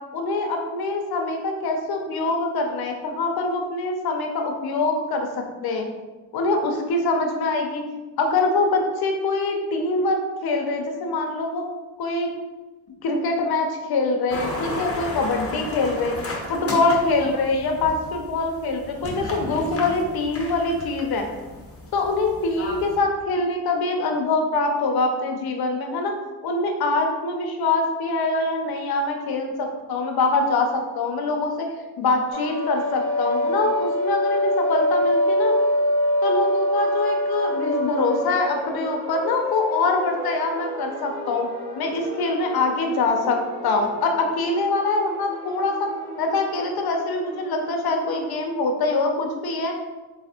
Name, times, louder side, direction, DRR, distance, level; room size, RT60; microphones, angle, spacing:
voice 1, 0.1-5.3 5.6-5.9 6.3-7.8 8.2-11.7 12.0-12.3 13.0-16.1 16.5-21.3 21.9-26.1 26.4-31.7 32.0-35.5 36.2-41.5 41.8-43.4 43.6-45.9 46.2-49.7, left 3 dB, 55° left, 3 dB, 0.7 m, -24 dB
sound 1, 14.3-23.0, left 2 dB, 30° left, 1.0 m, -34 dB
sound 2, 32.3-48.3, left 1 dB, 10° right, 1.3 m, -27 dB
3.2 x 2.7 x 2.8 m, 1.2 s
supercardioid pair, 55°, 44 cm